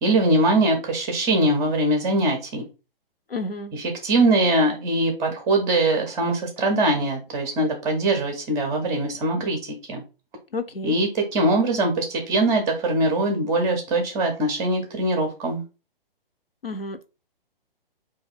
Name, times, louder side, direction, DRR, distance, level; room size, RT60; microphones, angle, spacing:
voice 1, 0.0-2.7 4.0-10.0 10.8-15.6, right 1 dB, 10° right, 0.5 m, -22 dB
voice 2, 3.3-3.7 10.5-11.0 16.6-17.1, left 2 dB, 75° left, 0.8 m, -30 dB
4.1 x 2.6 x 4.0 m
figure-of-eight pair, 130°, 29 cm